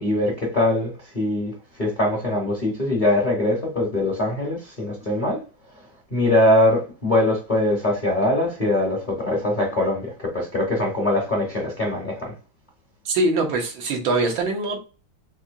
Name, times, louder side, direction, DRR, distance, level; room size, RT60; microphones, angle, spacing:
voice 1, 0.0-1.5 1.8-5.4 6.1-12.3, left 1 dB, 35° left, 0.8 m, -22 dB
voice 2, 13.0-14.8, right 2 dB, 80° right, 1.7 m, -23 dB
4.3 x 2.6 x 2.5 m
omnidirectional pair, 2.2 m